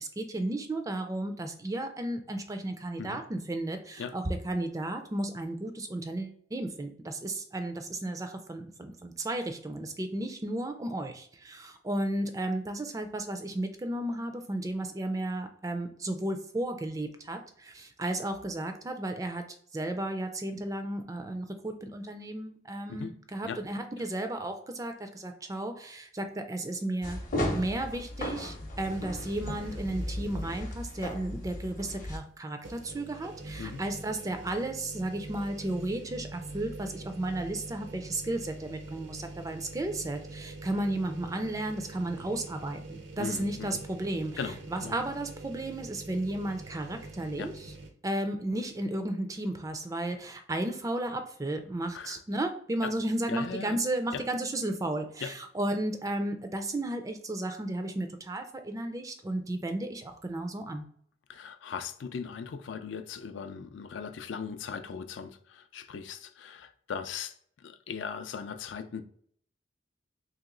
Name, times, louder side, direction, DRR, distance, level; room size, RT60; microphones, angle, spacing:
voice 1, 0.0-19.4 19.7-27.2 27.5-44.4 44.7-47.7 48.0-60.9, right 1 dB, 20° right, 0.3 m, -34 dB
sound 1, 27.0-32.2, left 1 dB, 45° left, 0.7 m, -35 dB
sound 2, 28.8-30.9 31.3-31.4 32.6-47.9, right 2 dB, 75° right, 0.6 m, -45 dB
voice 2, 43.2-43.8 44.4-45.0 47.4-47.5 51.9-52.2 52.8-52.9 53.3-53.8 54.1-54.2 55.2-55.3 61.3-69.0, left 6 dB, 75° left, 0.4 m, -39 dB
3.0 x 2.9 x 3.7 m
head